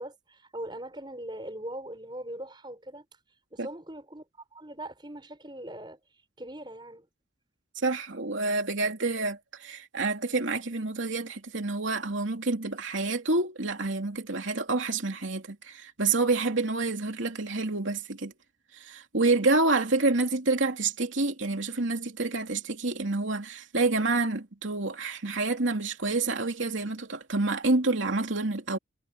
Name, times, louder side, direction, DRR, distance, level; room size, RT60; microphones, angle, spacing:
voice 1, 0.0-3.0 3.5-4.2 4.5-6.0 6.4-7.1, right 1 dB, 25° right, 5.1 m, -40 dB
voice 2, 7.8-18.3 18.7-28.8, right 3 dB, 80° right, 2.9 m, -28 dB
head